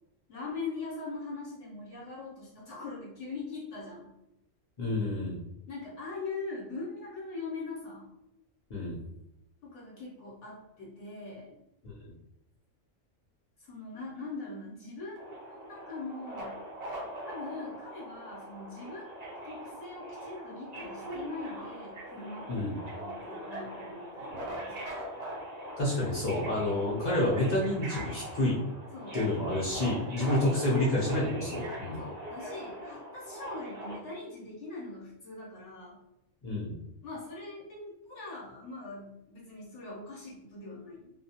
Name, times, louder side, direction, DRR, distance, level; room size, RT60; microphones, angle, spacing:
voice 1, 0.3-4.1 5.7-8.1 9.6-11.6 13.6-16.6 17.2-24.8 25.1-25.2 28.9-29.2 30.2-30.8 32.0-36.0 37.0-41.1, left 3 dB, 70° left, -5 dB, 1.0 m, -42 dB
voice 2, 4.8-5.4 8.7-9.0 11.8-12.1 22.5-22.7 25.8-28.6 29.1-32.0 36.4-36.7, left 1 dB, 40° left, -6 dB, 0.7 m, -29 dB
Subway metro underground, 15.2-34.0, right 1 dB, 50° right, 0.5 m, -41 dB
2.4 x 2.2 x 2.8 m, 0.87 s
omnidirectional pair, 1.3 m